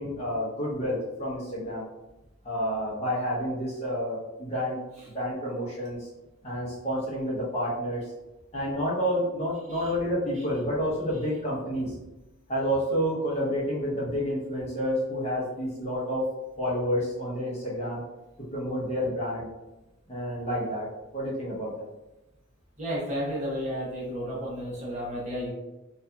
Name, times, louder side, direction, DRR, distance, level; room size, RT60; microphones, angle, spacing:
voice 1, 0.0-1.9 2.4-4.8 5.1-6.1 6.4-8.0 8.5-11.9 12.5-16.3 16.6-18.0 18.5-19.5 20.1-20.9 21.1-21.8, equal, 30° left, -7 dB, 0.8 m, -29 dB
voice 2, 22.8-25.5, equal, 35° right, -6 dB, 0.8 m, -32 dB
2.6 x 2.4 x 2.2 m, 1.0 s
head